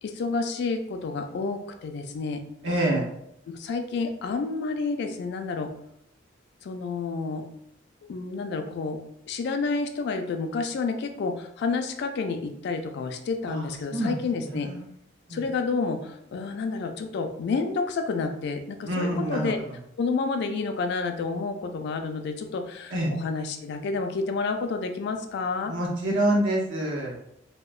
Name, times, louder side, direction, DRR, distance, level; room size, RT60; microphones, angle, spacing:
voice 1, 0.0-2.4 3.5-5.7 6.6-7.4 8.1-9.0 9.3-14.7 15.3-19.6 20.0-25.7, left 4 dB, 65° left, 6 dB, 0.3 m, -29 dB
voice 2, 2.6-3.0 13.5-13.7 13.9-14.2 14.5-14.8 15.3-15.4 18.8-19.5 22.9-23.1 25.7-27.3, right 1 dB, 80° right, -1 dB, 0.7 m, -26 dB
2.8 x 2.0 x 2.3 m, 0.75 s
head